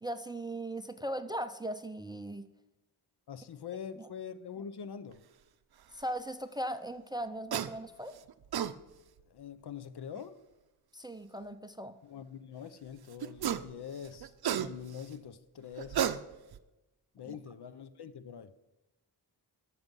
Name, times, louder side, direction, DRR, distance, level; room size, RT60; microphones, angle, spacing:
voice 1, 0.0-2.4 4.0-4.1 5.9-8.1 10.9-12.0 17.3-17.4, right 1 dB, 10° right, 11 dB, 0.4 m, -38 dB
voice 2, 3.3-5.2 9.3-10.4 12.0-16.1 17.1-18.5, left 7 dB, 65° left, 13 dB, 0.7 m, -44 dB
sound 1, 7.5-7.7 8.3-8.7 10.2-10.3 13.2-13.7 14.0-15.0 15.8-16.6, right 9 dB, 60° right, 0.6 m, -32 dB
13.5 x 6.1 x 5.4 m, 1.0 s
wide cardioid pair, 95°, 43 cm